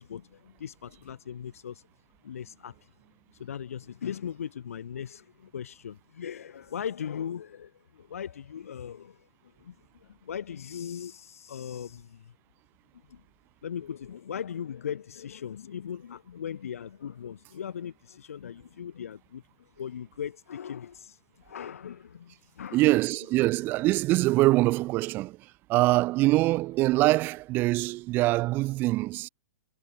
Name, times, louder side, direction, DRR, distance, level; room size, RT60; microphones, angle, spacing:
voice 1, 0.0-1.8 2.2-2.8 3.3-9.3 9.6-9.8 10.0-12.3 13.1-13.2 13.6-22.8, left 8 dB, 80° left, 4.1 m, -39 dB
voice 2, 22.7-29.3, right 19 dB, 25° right, 1.1 m, -24 dB
hypercardioid pair, 155°, 8 cm